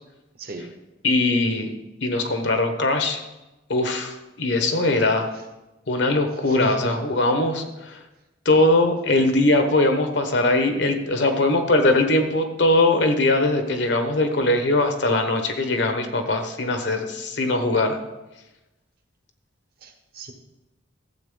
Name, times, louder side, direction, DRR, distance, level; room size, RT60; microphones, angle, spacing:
voice 1, 1.0-1.7 2.0-3.2 3.7-5.3 5.9-8.0 8.4-18.0, left 2 dB, 60° left, 6 dB, 1.1 m, -21 dB
voice 2, 6.5-6.9 19.8-20.3, right 1 dB, 50° right, 5 dB, 1.2 m, -35 dB
13.0 x 8.0 x 3.9 m, 1.0 s
head